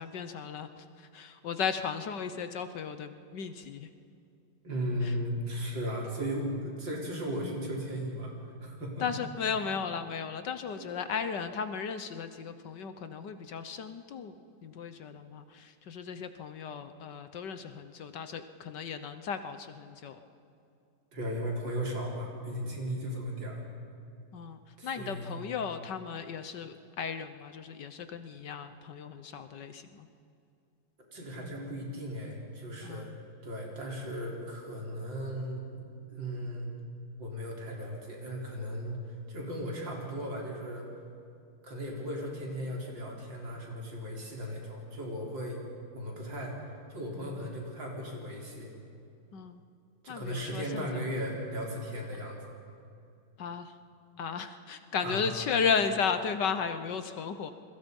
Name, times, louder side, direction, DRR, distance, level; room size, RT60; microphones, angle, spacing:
voice 1, 0.0-3.9 5.0-5.1 9.0-14.3 14.6-20.2 24.3-30.1 32.8-33.2 49.3-49.6 50.1-50.9 53.4-53.7 54.2-57.5, left 6 dB, 65° left, 10 dB, 1.5 m, -35 dB
voice 2, 4.6-8.3 8.6-9.1 10.7-11.1 17.6-17.7 21.1-23.6 24.8-25.4 31.1-33.1 33.4-35.8 36.1-36.7 37.2-40.9 41.6-45.6 45.9-48.7 50.0-52.4 55.0-55.3, equal, 65° right, -2 dB, 4.8 m, -36 dB
28.0 x 22.5 x 5.4 m, 2.6 s
omnidirectional pair, 2.2 m